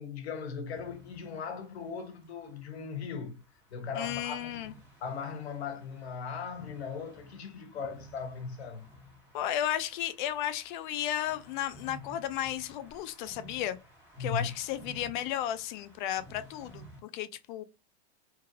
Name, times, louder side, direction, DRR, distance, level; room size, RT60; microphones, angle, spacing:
voice 1, 0.0-3.4 3.7-4.5 5.0-8.9 14.2-14.5, left 5 dB, 85° left, 0.9 m, -38 dB
sound 1, 0.7-17.0, equal, 5° right, 1.6 m, -54 dB
voice 2, 3.9-4.7 9.3-13.8 14.2-17.6, left 11 dB, 50° left, 0.5 m, -34 dB
2.9 x 2.5 x 2.6 m
hypercardioid pair, 130°, 31 cm